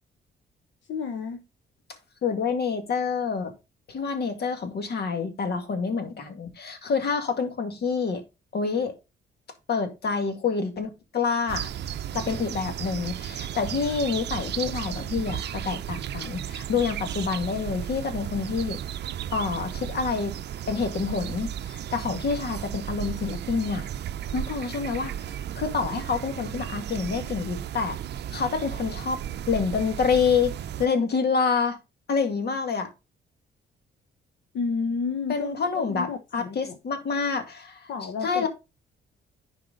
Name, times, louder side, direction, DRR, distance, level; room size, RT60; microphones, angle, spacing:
voice 1, 0.9-1.4 34.5-35.5 35.9-36.8 37.9-38.5, left 5 dB, 70° left, 1.0 m, -30 dB
voice 2, 2.2-3.5 3.9-8.2 8.5-8.9 9.7-11.7 12.1-18.8 19.3-20.4 20.7-23.9 24.3-28.0 28.3-29.2 29.5-30.5 30.8-31.8 32.1-32.9 35.3-37.9 38.2-38.5, left 5 dB, 55° left, 2.1 m, -27 dB
sound 1, 11.5-30.9, right 10 dB, 60° right, 0.6 m, -34 dB
10.5 x 4.8 x 3.8 m
cardioid pair, 90°, 20 cm